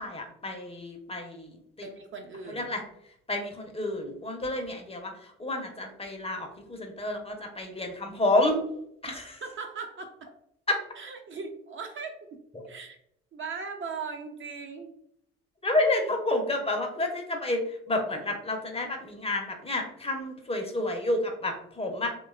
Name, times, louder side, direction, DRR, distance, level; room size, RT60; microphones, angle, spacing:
voice 1, 0.0-1.9 2.5-2.8 3.3-8.6 9.0-9.4 15.6-17.6 17.9-22.1, left 2 dB, 15° left, 3 dB, 0.6 m, -30 dB
voice 2, 1.8-2.7 9.1-10.3 11.0-12.4 12.7-13.0 13.3-14.9, right 5 dB, 35° right, 4 dB, 0.4 m, -39 dB
2.8 x 2.2 x 2.3 m, 0.74 s
hypercardioid pair, 55°, 34 cm